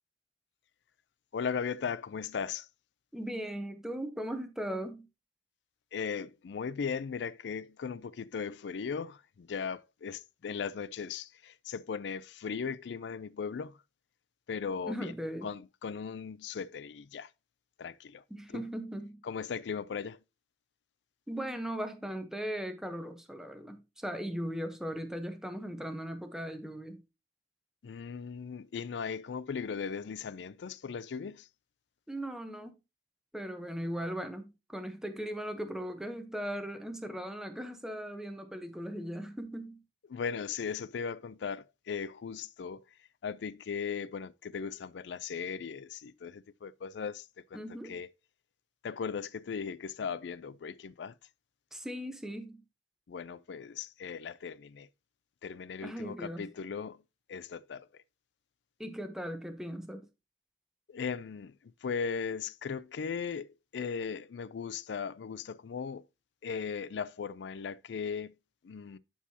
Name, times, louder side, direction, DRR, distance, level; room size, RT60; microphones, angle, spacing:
voice 1, 1.3-2.7 5.9-13.8 14.5-15.1 15.4-17.3 17.8-18.2 18.5-18.6 19.3-20.2 27.8-31.5 40.1-42.8 43.2-47.2 47.5-47.6 47.9-48.1 48.8-51.1 53.1-54.9 55.4-57.0 57.3-57.9 60.9-61.5 61.8-66.0 66.4-68.3 68.6-69.0, left 6 dB, 80° left, 0.4 m, -37 dB
voice 2, 3.1-5.1 14.9-15.5 18.3-19.2 21.3-27.0 32.1-32.7 33.3-39.8 47.5-48.0 51.7-52.6 55.8-56.5 58.8-60.1, equal, 5° right, 0.9 m, -38 dB
11.0 x 4.7 x 2.8 m
head